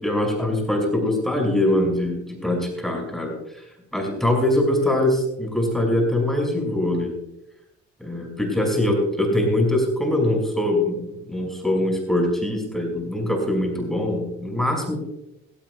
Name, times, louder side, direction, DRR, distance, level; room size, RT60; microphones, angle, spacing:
voice 1, 0.0-3.6 3.9-7.1 8.0-15.0, left 1 dB, ahead, 0 dB, 5.7 m, -23 dB
17.0 x 16.0 x 2.3 m, 0.84 s
cardioid pair, 90°, 30 cm